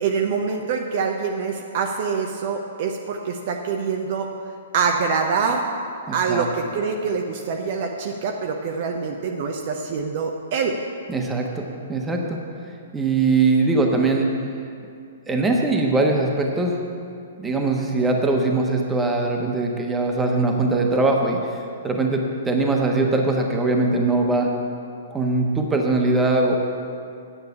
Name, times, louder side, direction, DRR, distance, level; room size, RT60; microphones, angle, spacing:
voice 1, 0.0-4.3 4.7-5.6 6.1-10.7, right 5 dB, 45° right, 2 dB, 0.8 m, -25 dB
voice 2, 6.0-6.5 11.1-12.4 12.9-14.3 15.3-16.8 17.4-21.4 21.8-24.5 25.1-26.5, right 3 dB, 10° right, 1 dB, 1.2 m, -21 dB
9.8 x 7.9 x 6.9 m, 2.4 s
figure-of-eight pair, 115°, 0 cm